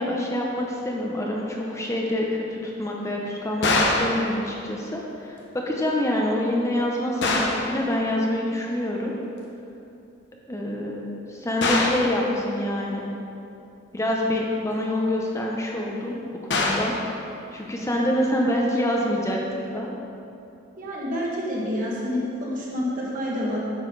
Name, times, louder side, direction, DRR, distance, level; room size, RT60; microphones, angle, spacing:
voice 1, 0.0-9.1 10.5-13.1 13.9-16.2 16.4-16.9 17.5-19.9, left 1 dB, 15° left, -2 dB, 0.7 m, -26 dB
sound 1, 3.6-4.2 7.2-7.7 11.6-12.1 16.5-17.0, left 2 dB, 65° left, 1.0 m, -22 dB
voice 2, 20.8-23.6, left 1 dB, 45° right, -5 dB, 1.8 m, -28 dB
9.4 x 6.4 x 3.9 m, 2.8 s
head